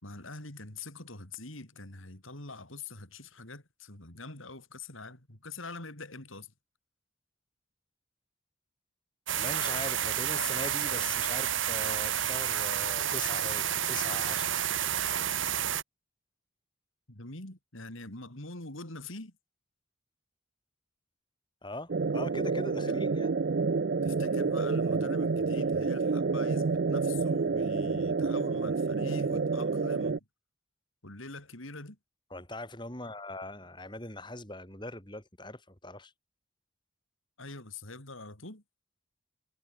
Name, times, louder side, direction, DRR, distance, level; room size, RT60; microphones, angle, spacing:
voice 1, 0.0-6.5 17.1-19.3 22.9-23.0 24.0-30.2 31.0-32.0 37.4-38.6, left 2 dB, 75° left, 4.8 m, -44 dB
voice 2, 9.3-14.8 21.6-23.4 32.3-36.1, left 2 dB, 20° left, 6.1 m, -41 dB
sound 1, 9.3-15.8, right 10 dB, 70° right, 2.6 m, -30 dB
sound 2, 21.9-30.2, right 4 dB, 55° right, 0.5 m, -29 dB
head